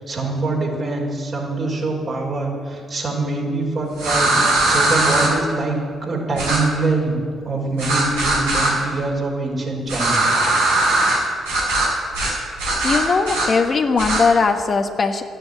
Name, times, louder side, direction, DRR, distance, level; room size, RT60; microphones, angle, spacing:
voice 1, 0.0-4.3 4.6-5.8 6.0-10.3, right 2 dB, 50° right, -2 dB, 5.1 m, -24 dB
sound 1, 4.0-5.3 6.4-6.6 7.8-8.7 9.9-11.2 11.5-11.9 12.1-12.3 12.6-13.5 14.0-14.2, right 2 dB, 85° right, 4.8 m, -19 dB
voice 2, 12.8-15.2, left 4 dB, 45° left, 6 dB, 1.2 m, -19 dB
13.0 x 10.0 x 9.3 m, 2.1 s
hypercardioid pair, 45°, 0 cm